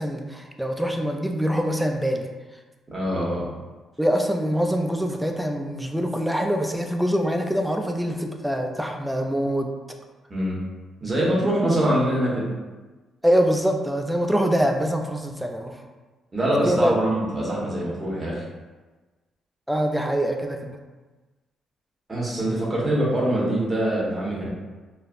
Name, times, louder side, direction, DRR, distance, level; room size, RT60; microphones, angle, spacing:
voice 1, 0.0-2.3 4.0-9.7 13.2-15.8 16.6-16.9 19.7-20.8, equal, 5° right, 3 dB, 0.3 m, -24 dB
voice 2, 2.9-3.5 10.3-10.6 11.0-12.5 16.3-18.4 22.1-24.5, right 1 dB, 20° right, -6 dB, 1.0 m, -24 dB
3.1 x 2.1 x 2.4 m, 1.3 s
cardioid pair, 90°, 0 cm